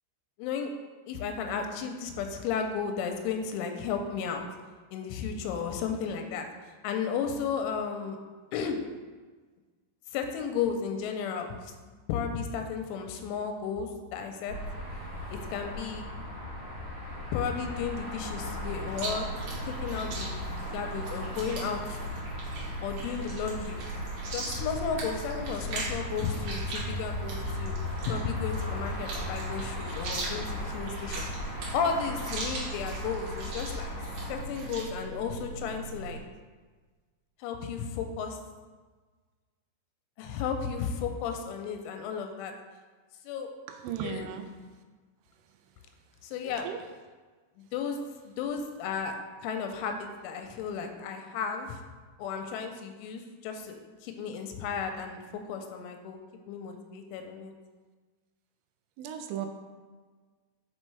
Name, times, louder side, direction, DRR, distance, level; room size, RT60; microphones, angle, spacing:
voice 1, 0.4-0.7 1.1-4.5 4.9-8.2 8.5-8.8 10.1-11.7 12.1-14.5 15.3-16.1 17.3-19.3 19.6-22.0 22.8-23.9 24.3-27.8 28.1-31.3 31.7-33.9 34.3-36.2 37.4-38.4 40.2-42.5 43.2-43.5 44.0-44.3 46.2-46.7 47.6-48.0 48.3-49.1 49.4-51.8 52.2-55.2 55.5-56.2 56.5-57.5, left 6 dB, 90° left, 5 dB, 3.0 m, -34 dB
sound 1, 14.5-34.4, left 2 dB, 50° right, 2.6 m, -38 dB
sound 2, 18.4-36.2, right 3 dB, 75° left, 2.1 m, -41 dB
Chewing mastication, 18.9-34.9, right 3 dB, 65° right, 2.7 m, -41 dB
voice 2, 43.7-44.5 46.6-46.8 59.0-59.5, right 9 dB, 90° right, 6 dB, 3.1 m, -35 dB
6.2 x 5.3 x 3.2 m, 1.4 s
omnidirectional pair, 5.4 m